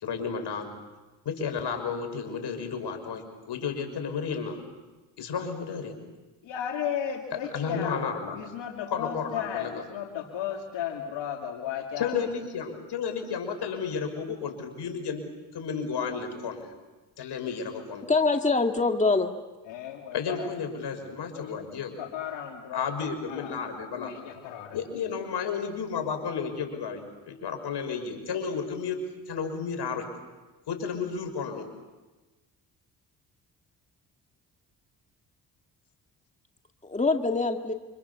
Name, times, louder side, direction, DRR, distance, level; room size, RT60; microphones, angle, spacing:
voice 1, 0.0-0.7 1.2-4.6 5.2-5.9 7.5-8.4 8.9-9.8 12.0-16.7 17.2-18.1 20.1-22.0 22.7-24.1 24.7-30.1 30.7-31.7, left 6 dB, 65° left, 5 dB, 5.9 m, -32 dB
voice 2, 6.4-8.0 8.3-12.1 19.7-20.5 21.3-21.6 22.0-22.8 23.3-23.6 24.0-24.8, left 9 dB, 80° left, 2 dB, 2.7 m, -35 dB
voice 3, 18.1-19.3 36.8-37.7, left 3 dB, 15° left, 4 dB, 2.1 m, -24 dB
29.0 x 26.0 x 7.1 m, 1.2 s
supercardioid pair, 65°, 43 cm